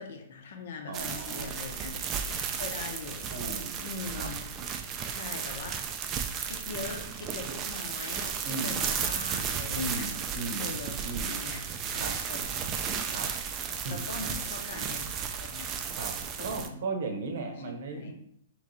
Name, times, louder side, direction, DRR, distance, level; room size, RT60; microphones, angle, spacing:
voice 1, 0.0-2.0 2.6-3.3 3.8-4.4 5.1-5.8 6.4-10.1 10.6-12.7 13.2-13.3 13.9-15.1 15.3-15.7 16.4-16.8 17.9-18.1, left 4 dB, 60° left, 3 dB, 0.8 m, -41 dB
sound 1, 0.9-16.7, right 7 dB, 25° right, 0.3 m, -34 dB
voice 2, 0.9-1.5 3.3-3.7 4.1-4.3 8.4-8.8 9.7-10.7 11.0-11.3 12.0-12.2 13.1-13.3 13.8-14.0 16.0-16.1 16.4-18.1, right 3 dB, 60° right, 4 dB, 0.8 m, -36 dB
3.2 x 3.1 x 4.0 m, 0.70 s
hypercardioid pair, 155°, 0 cm